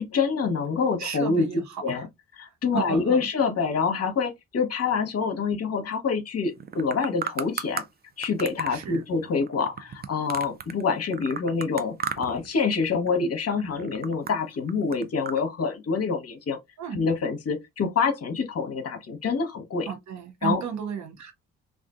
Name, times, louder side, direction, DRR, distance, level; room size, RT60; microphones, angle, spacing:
voice 1, 0.0-1.5 1.8-2.0 2.4-7.8 8.2-16.6 16.9-19.9 20.4-20.6, left 5 dB, 45° left, 0.9 m, -26 dB
voice 2, 1.0-2.1 2.5-3.2 8.7-9.0 16.8-17.0 19.8-21.3, right 7 dB, 55° right, 0.9 m, -33 dB
sound 1, 6.6-7.9 8.2-10.8 11.1-12.5 12.7-13.2 13.6-15.4, right 7 dB, 30° right, 0.4 m, -35 dB
2.5 x 2.4 x 2.3 m
hypercardioid pair, 45°, 33 cm